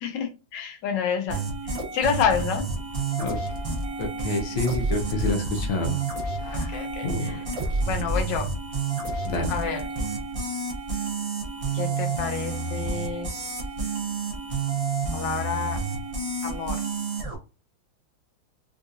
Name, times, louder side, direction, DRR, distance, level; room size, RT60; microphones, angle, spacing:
voice 1, 0.0-2.7 6.4-7.4 7.9-8.5 9.5-9.9 11.7-13.4 15.1-15.8 16.4-16.8, left 7 dB, 70° left, 1.3 m, -29 dB
sound 1, 1.3-17.3, right 3 dB, 55° right, 0.3 m, -29 dB
voice 2, 4.0-6.0 6.4-6.7 7.0-7.4 9.3-9.5, left 2 dB, 85° left, 1.5 m, -28 dB
3.7 x 2.4 x 2.7 m
omnidirectional pair, 2.1 m